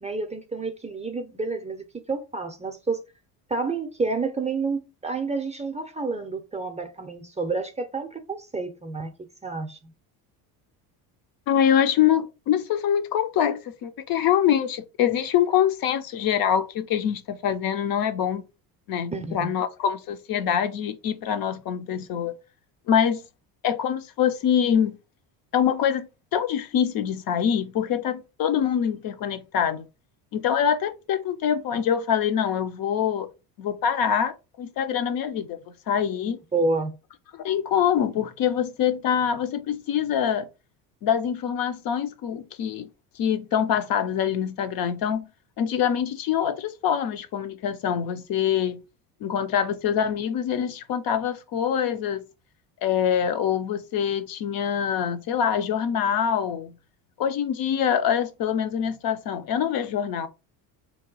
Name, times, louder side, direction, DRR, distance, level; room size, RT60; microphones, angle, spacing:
voice 1, 0.0-3.0 3.5-9.1 9.4-9.9 19.1-19.5 36.5-36.9, right 3 dB, 15° right, 0.6 m, -29 dB
voice 2, 11.5-18.4 18.9-22.4 22.9-23.2 23.6-25.0 25.5-29.9 30.3-33.3 33.6-35.6 35.9-36.4 37.4-40.5 41.0-42.9 43.2-45.3 45.6-48.8 49.2-52.2 52.8-56.7 57.2-60.3, left 8 dB, 50° left, 0.6 m, -24 dB
2.9 x 2.1 x 3.9 m
supercardioid pair, 75°, 47 cm